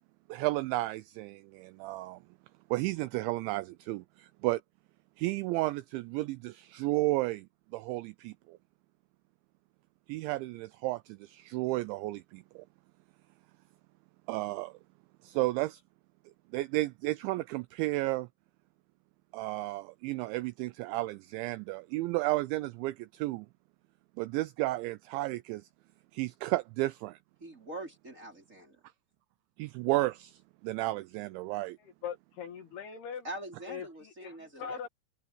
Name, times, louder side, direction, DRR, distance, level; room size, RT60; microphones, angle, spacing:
voice 1, 0.3-2.2 2.7-4.6 5.2-7.5 7.7-8.6 10.1-12.6 14.3-14.8 15.2-15.8 16.5-18.3 19.3-23.5 24.2-25.7 26.1-27.2 29.6-31.8, right 19 dB, 85° right, 2.6 m, -33 dB
voice 2, 27.4-28.8 33.2-34.9, right 1 dB, 15° right, 4.2 m, -43 dB
voice 3, 31.8-33.3 33.7-34.9, left 7 dB, 60° left, 3.7 m, -41 dB
omnidirectional pair, 5.8 m